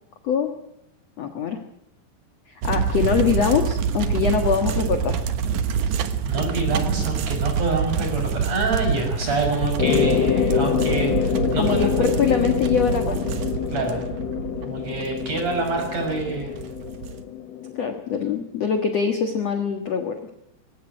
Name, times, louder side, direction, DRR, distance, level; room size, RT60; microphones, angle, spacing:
voice 1, 1.2-1.6 2.6-5.2 11.6-13.2 13.9-14.0 17.8-20.2, left 6 dB, 55° left, 6 dB, 2.0 m, -23 dB
sound 1, 2.6-17.2, right 7 dB, 60° right, 2.2 m, -26 dB
voice 2, 5.9-11.9 13.7-14.0 14.6-16.5, right 2 dB, 40° right, 3 dB, 7.4 m, -26 dB
sound 2, 9.8-18.0, left 9 dB, 90° left, 1.4 m, -26 dB
22.5 x 17.0 x 9.7 m, 0.81 s
omnidirectional pair, 4.8 m